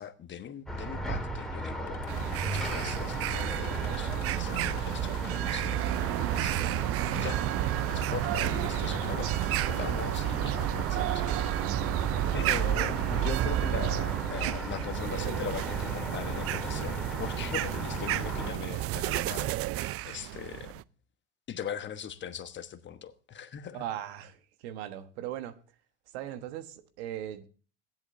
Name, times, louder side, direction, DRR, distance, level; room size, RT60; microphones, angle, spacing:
voice 1, 0.0-2.0 2.4-7.4 7.9-11.6 12.3-20.8 21.5-23.9, left 8 dB, 35° left, 1.2 m, -40 dB
sound 1, 0.7-18.5, right 1 dB, ahead, 2.3 m, -37 dB
sound 2, 1.8-10.8 11.1-11.2 11.9-12.0 12.7-12.8 13.9-14.1 14.5-14.7 15.0-19.1, left 12 dB, 65° left, 2.3 m, -49 dB
sound 3, 2.1-20.8, right 15 dB, 45° right, 0.5 m, -31 dB
voice 2, 23.7-25.6 26.1-27.5, right 11 dB, 75° right, 1.4 m, -38 dB
16.0 x 10.5 x 2.7 m
hypercardioid pair, 85°, 33 cm